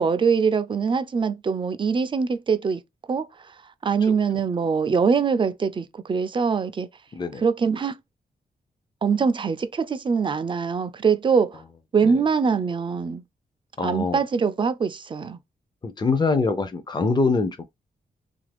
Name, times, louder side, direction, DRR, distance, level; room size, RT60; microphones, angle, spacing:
voice 1, 0.0-2.8 3.1-3.3 3.8-6.9 7.4-8.0 9.0-11.6 11.9-13.2 13.8-15.4, right 5 dB, 30° right, 0.4 m, -23 dB
voice 2, 13.8-14.2 15.8-17.6, left 4 dB, 25° left, 0.5 m, -24 dB
2.8 x 2.5 x 3.4 m
wide cardioid pair, 110°, 16 cm